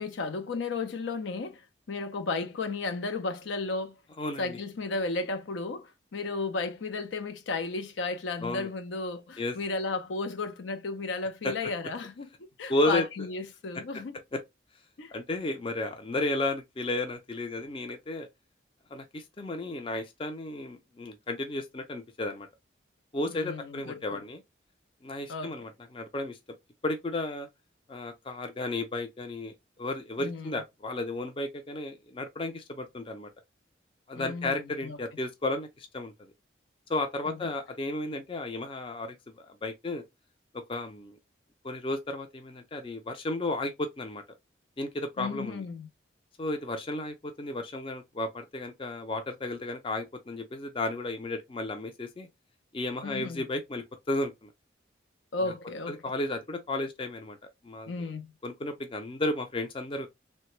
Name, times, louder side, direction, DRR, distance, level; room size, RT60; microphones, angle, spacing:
voice 1, 0.0-1.6 1.9-3.9 4.4-14.1 15.0-15.1 23.3-24.2 25.3-25.7 30.2-30.6 34.1-35.0 37.3-37.4 45.2-45.9 53.0-53.4 55.3-56.0 57.9-58.3, left 3 dB, 80° left, 0.5 m, -34 dB
voice 2, 4.2-4.6 8.4-8.7 9.4-9.6 11.4-11.5 12.7-13.0 14.3-14.4 15.1-18.3 18.9-22.5 23.1-24.4 25.0-26.4 26.8-27.5 27.9-33.3 34.1-36.3 36.9-40.0 40.5-41.2 41.6-44.2 44.8-45.6 46.4-52.3 52.7-54.5 55.4-55.5 55.9-57.4 57.6-58.1 58.4-60.1, left 2 dB, 30° left, 0.4 m, -33 dB
3.2 x 2.2 x 2.9 m
head